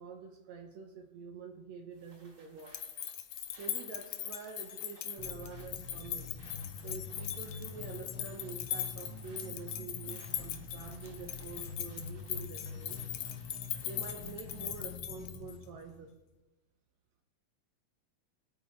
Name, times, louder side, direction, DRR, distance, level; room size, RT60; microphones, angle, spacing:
voice 1, 0.0-2.8 3.6-6.3 6.8-13.0 13.8-16.1, right 5 dB, 70° right, 4 dB, 1.9 m, -47 dB
sound 1, 1.9-14.9, right 2 dB, 30° right, 1.1 m, -62 dB
sound 2, 2.6-15.6, left 11 dB, 75° left, 1.9 m, -40 dB
sound 3, 5.2-16.1, left 5 dB, 40° left, 2.4 m, -46 dB
20.5 x 8.9 x 3.1 m, 1.0 s
omnidirectional pair, 3.4 m